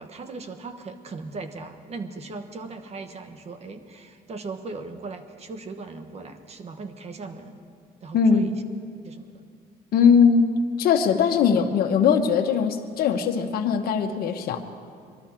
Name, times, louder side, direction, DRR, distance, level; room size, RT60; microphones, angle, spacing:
voice 1, 0.0-7.6 8.0-8.6 9.0-9.4, right 3 dB, 40° right, 9 dB, 1.2 m, -38 dB
voice 2, 8.1-8.5 9.9-10.5 10.8-14.6, left 6 dB, 65° left, 4 dB, 1.0 m, -20 dB
22.5 x 13.0 x 4.5 m, 2.2 s
cardioid pair, 110°, 17 cm